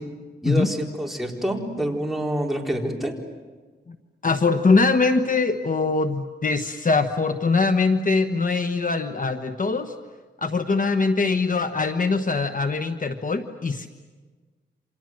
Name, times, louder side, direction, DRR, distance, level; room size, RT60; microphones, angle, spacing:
voice 1, 0.4-3.1, right 1 dB, ahead, 0 dB, 4.4 m, -27 dB
voice 2, 4.2-9.9 10.4-13.9, left 4 dB, 45° left, 8 dB, 1.2 m, -22 dB
29.0 x 26.5 x 7.7 m, 1.4 s
wide cardioid pair, 90°, 19 cm